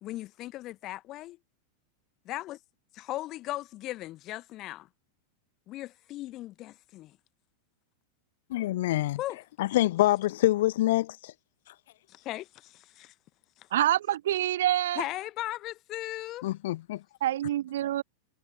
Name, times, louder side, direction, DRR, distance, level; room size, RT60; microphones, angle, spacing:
voice 1, 0.0-1.4 2.2-2.6 2.9-4.9 5.7-7.2 9.2-9.4 12.1-13.1 13.6-13.7 15.0-16.5, left 16 dB, 35° left, 1.1 m, -37 dB
voice 2, 8.5-9.2 9.6-11.3 16.4-17.0, left 15 dB, 55° left, 0.9 m, -26 dB
voice 3, 13.7-15.0 17.2-18.0, right 12 dB, 60° right, 0.6 m, -26 dB
figure-of-eight pair, 90°, 0 cm